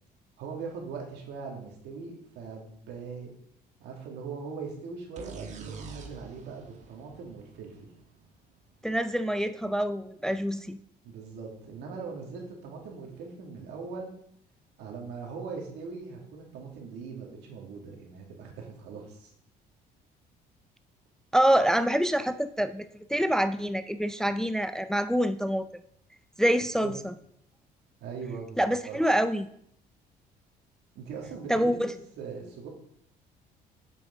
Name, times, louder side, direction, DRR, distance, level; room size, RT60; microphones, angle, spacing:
voice 1, 0.4-3.3 3.8-7.9 11.0-14.1 14.8-19.3 26.8-26.9 28.0-29.0 31.0-32.7, right 5 dB, 85° right, 0 dB, 2.2 m, -40 dB
sound 1, 5.2-8.8, right 5 dB, 45° right, 1.3 m, -46 dB
voice 2, 8.8-10.8 21.3-25.7 26.4-27.1 28.6-29.5 31.5-31.9, equal, 5° left, 10 dB, 0.3 m, -26 dB
8.5 x 7.1 x 3.8 m, 0.69 s
cardioid pair, 110°, 17 cm